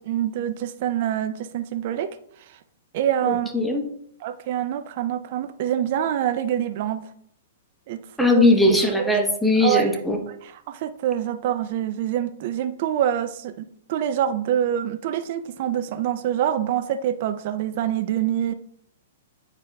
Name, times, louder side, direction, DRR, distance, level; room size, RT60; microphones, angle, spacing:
voice 1, 0.1-2.6 2.9-3.5 4.2-7.0 7.9-8.5 9.0-9.1 9.6-10.0 10.3-18.5, right 10 dB, 50° right, 10 dB, 0.4 m, -26 dB
voice 2, 3.3-3.8 8.2-10.2, left 2 dB, 5° left, 2 dB, 1.0 m, -19 dB
8.9 x 4.7 x 2.3 m, 0.69 s
hypercardioid pair, 125°, 0 cm